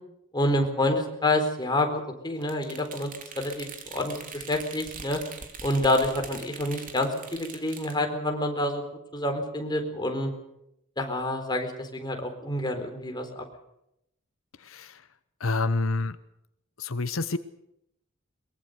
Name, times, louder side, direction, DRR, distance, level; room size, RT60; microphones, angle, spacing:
voice 1, 0.3-5.2 5.6-8.8 9.1-10.3 11.0-13.5, left 1 dB, 20° left, 4 dB, 4.2 m, -28 dB
sound 1, 2.4-8.0, right 5 dB, 45° right, 3.4 m, -42 dB
voice 2, 14.6-15.0 15.4-16.2 16.8-17.4, left 3 dB, 80° left, 12 dB, 0.9 m, -28 dB
23.0 x 22.0 x 6.8 m, 0.81 s
head